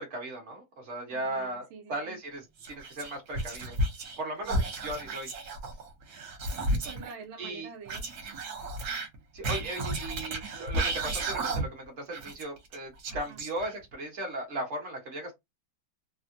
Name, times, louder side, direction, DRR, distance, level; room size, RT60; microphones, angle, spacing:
voice 1, 0.0-2.4 2.7-3.8 4.2-5.3 7.4-7.7 9.3-15.3, right 1 dB, 40° right, 1.1 m, -37 dB
voice 2, 1.1-2.2 4.4-4.7 6.7-8.1 13.1-13.4, right 6 dB, 80° right, 1.3 m, -47 dB
Whispering, 2.6-4.2 4.4-7.1 7.9-11.8 12.1-13.9, right 1 dB, 65° right, 1.0 m, -33 dB
3.4 x 2.1 x 2.6 m
omnidirectional pair, 2.2 m